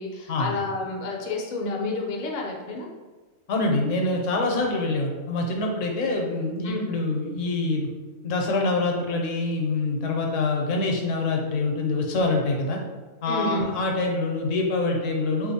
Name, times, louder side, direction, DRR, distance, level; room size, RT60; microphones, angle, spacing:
voice 1, 0.0-2.9 6.6-6.8 13.3-13.7, left 3 dB, 55° left, -1 dB, 0.5 m, -30 dB
voice 2, 3.5-7.9 8.2-12.8 13.2-15.5, left 2 dB, 70° left, 1 dB, 0.9 m, -25 dB
3.7 x 2.5 x 2.7 m, 1.3 s
omnidirectional pair, 1.4 m